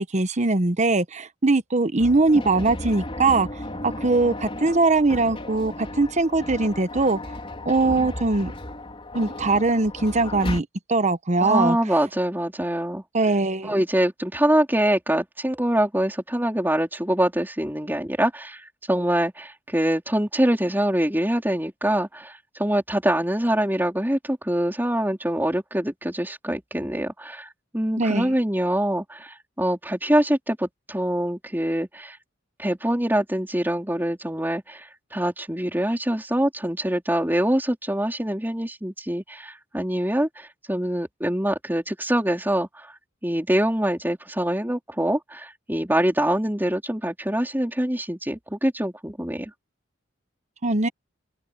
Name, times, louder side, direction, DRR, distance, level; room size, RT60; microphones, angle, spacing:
voice 1, 0.0-3.5 3.8-7.2 7.6-8.5 9.1-11.8 13.1-13.7 28.0-28.3 50.6-50.9, right 3 dB, 35° right, 1.0 m, -21 dB
sound 1, 2.0-10.6, left 1 dB, 30° left, 4.0 m, -35 dB
voice 2, 11.4-13.0 13.6-18.6 18.9-27.5 27.7-32.2 32.6-42.9 43.2-49.5, right 1 dB, 10° right, 4.0 m, -24 dB
open air
head